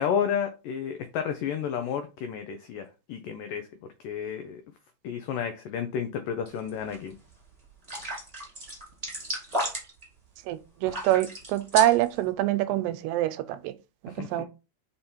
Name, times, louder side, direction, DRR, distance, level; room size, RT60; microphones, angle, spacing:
voice 1, 0.0-3.7 4.0-4.6 5.0-7.2 14.1-14.4, left 8 dB, 90° left, 1.8 m, -31 dB
sound 1, 6.4-6.9 7.3-7.4 7.8-10.0 10.8-12.2, equal, 20° right, 1.1 m, -34 dB
voice 2, 10.5-13.3 14.0-14.5, right 14 dB, 85° right, 2.7 m, -25 dB
5.6 x 5.1 x 4.4 m
omnidirectional pair, 4.8 m